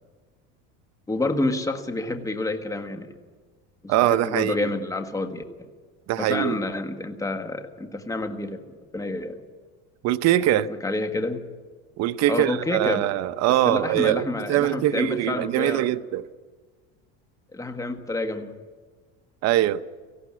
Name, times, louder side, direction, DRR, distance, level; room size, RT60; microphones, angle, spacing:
voice 1, 1.1-3.1 3.8-5.7 6.2-8.6 8.9-9.4 10.5-11.4 12.3-13.1 13.6-15.9 17.5-18.5, left 2 dB, 10° left, 1.6 m, -28 dB
voice 2, 3.9-4.7 6.1-6.6 10.0-10.7 12.0-16.3 19.4-19.8, right 14 dB, 45° right, 0.8 m, -22 dB
18.5 x 15.0 x 9.8 m
cardioid pair, 130°, 35 cm